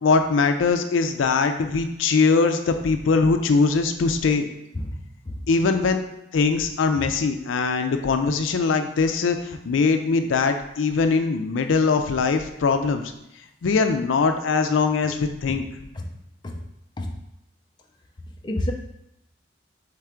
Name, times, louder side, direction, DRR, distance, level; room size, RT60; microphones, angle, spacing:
voice 1, 0.0-4.5 5.5-6.0 6.3-13.0 13.6-15.6, left 4 dB, 85° left, 7 dB, 0.4 m, -21 dB
voice 2, 4.7-5.5 15.5-15.6 15.9-16.2 16.4-16.6 17.0-17.1 18.4-18.7, left 1 dB, 25° left, 1 dB, 0.4 m, -30 dB
4.4 x 3.3 x 3.6 m, 0.84 s
head